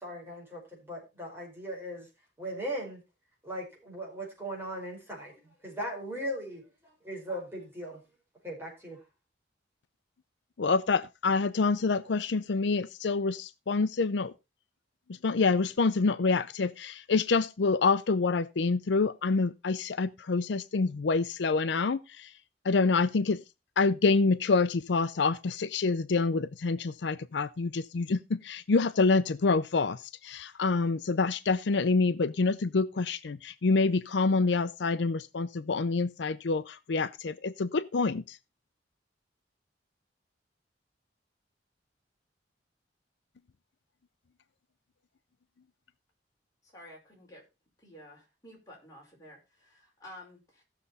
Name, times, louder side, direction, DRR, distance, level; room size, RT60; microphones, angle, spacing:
voice 1, 0.0-2.1 2.4-3.0 3.4-5.3 5.6-8.0 8.4-9.0, equal, 15° right, 4.9 m, -38 dB
voice 2, 10.6-14.3 15.1-22.3 22.6-23.4 23.8-38.4, left 4 dB, 70° left, 0.5 m, -27 dB
voice 3, 46.6-47.4 47.8-50.6, left 1 dB, 20° left, 5.1 m, -51 dB
16.0 x 6.7 x 4.1 m
head